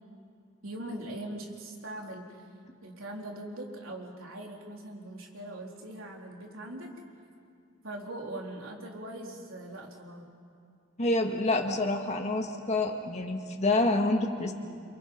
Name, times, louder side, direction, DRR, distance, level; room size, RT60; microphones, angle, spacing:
voice 1, 0.6-2.4 2.8-6.9 7.8-10.3, right 1 dB, 90° right, 0 dB, 3.7 m, -41 dB
voice 2, 11.0-14.5, left 2 dB, 35° left, 2 dB, 1.8 m, -27 dB
30.0 x 27.5 x 5.5 m, 2.4 s
head